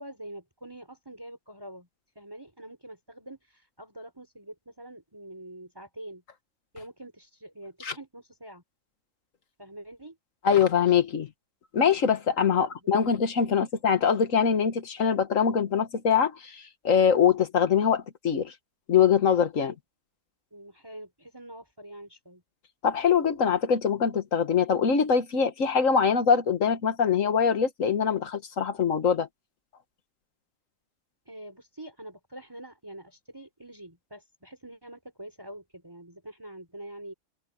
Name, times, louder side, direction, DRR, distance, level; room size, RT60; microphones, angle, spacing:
voice 1, 0.0-1.9 2.1-6.2 6.7-8.6 9.6-10.2 12.5-12.7 19.6-19.8 20.5-22.4 31.3-37.1, right 1 dB, 15° right, 4.6 m, -45 dB
voice 2, 10.4-11.3 11.7-18.5 18.9-19.7 22.8-29.3, left 7 dB, 85° left, 1.9 m, -23 dB
omnidirectional pair, 1.3 m